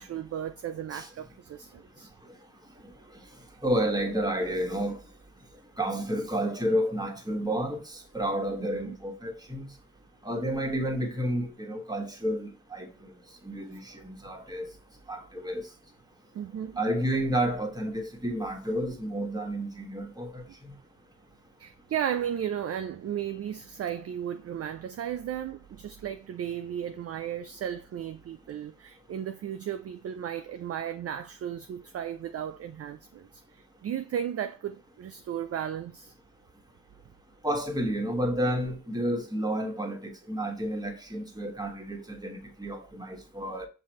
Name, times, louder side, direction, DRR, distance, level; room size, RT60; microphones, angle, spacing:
voice 1, 0.0-2.1 8.6-9.0 16.3-16.8 21.6-36.1, right 9 dB, 35° right, 0.4 m, -35 dB
voice 2, 3.6-5.0 5.8-9.7 10.2-12.9 13.4-14.7 15.1-15.6 16.8-20.7 37.4-43.7, equal, 10° right, 1.3 m, -30 dB
5.6 x 2.7 x 3.0 m
supercardioid pair, 50°, 41 cm